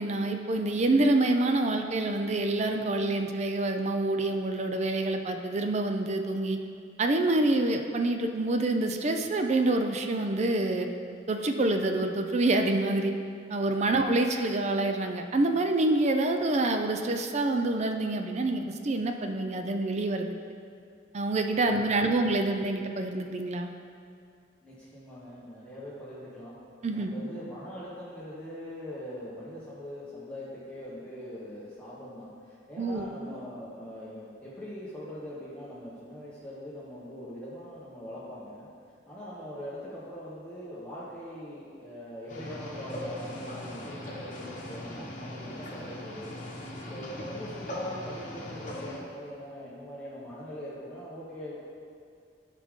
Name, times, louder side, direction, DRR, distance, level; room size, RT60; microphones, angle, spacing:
voice 1, 0.0-6.6 7.0-10.9 11.3-13.1 13.5-20.3 21.1-23.7 26.8-27.1 32.8-33.1, right 2 dB, 40° right, 5 dB, 0.4 m, -27 dB
voice 2, 21.7-22.4 24.6-26.6 26.9-38.7 39.1-46.3 46.8-51.7, equal, 10° left, -9 dB, 1.1 m, -42 dB
sound 1, 42.3-49.0, left 1 dB, 45° left, 1.2 m, -39 dB
12.0 x 4.9 x 3.7 m, 2.4 s
head